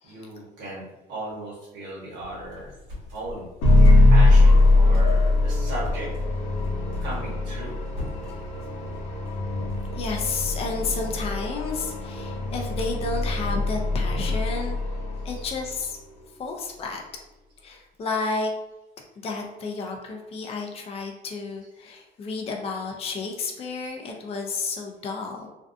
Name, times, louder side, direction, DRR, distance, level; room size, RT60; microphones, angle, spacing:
voice 1, 0.0-2.7 3.1-3.5 4.1-6.1 7.0-7.8 15.3-15.4, right 1 dB, 65° right, -6 dB, 1.0 m, -36 dB
sound 1, 2.2-12.7, left 2 dB, 85° right, 1.2 m, -40 dB
sound 2, 3.6-15.8, left 2 dB, 85° left, 0.7 m, -21 dB
voice 2, 9.9-14.8 15.2-16.0 16.4-17.0 17.6-18.5 19.2-25.5, left 4 dB, 30° left, 1 dB, 0.4 m, -31 dB
2.5 x 2.2 x 2.4 m, 1.0 s
cardioid pair, 105°, 20 cm